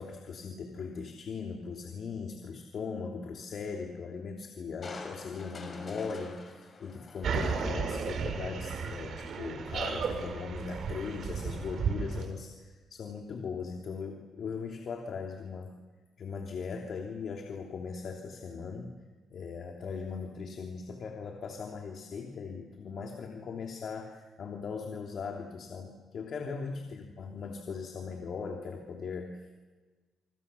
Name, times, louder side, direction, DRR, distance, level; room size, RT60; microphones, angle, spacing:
voice 1, 0.0-15.8 16.2-18.9 19.3-29.6, left 5 dB, 55° left, 2 dB, 3.0 m, -39 dB
Crushing, 4.8-8.2 8.6-8.7, left 3 dB, 40° left, 5.8 m, -46 dB
sound 1, 7.2-12.2, right 5 dB, 60° right, 5.2 m, -34 dB
27.0 x 25.5 x 7.0 m, 1.3 s
cardioid pair, 90°, 0 cm